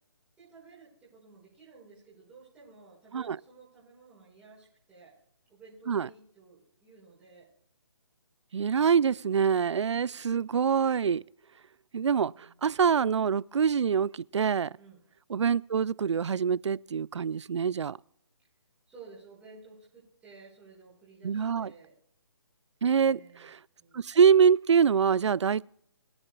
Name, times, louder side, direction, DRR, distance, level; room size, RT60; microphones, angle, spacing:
voice 1, 0.4-5.2 5.5-7.5 12.3-12.7 14.7-15.0 18.9-21.9 22.9-23.5 23.8-24.1, right 4 dB, 5° right, 5.7 m, -54 dB
voice 2, 8.5-11.2 11.9-12.3 12.6-14.7 15.3-18.0 21.2-21.7 22.8-23.6 23.9-25.6, right 7 dB, 80° right, 0.4 m, -25 dB
22.5 x 9.8 x 2.3 m
hypercardioid pair, 155°, 15 cm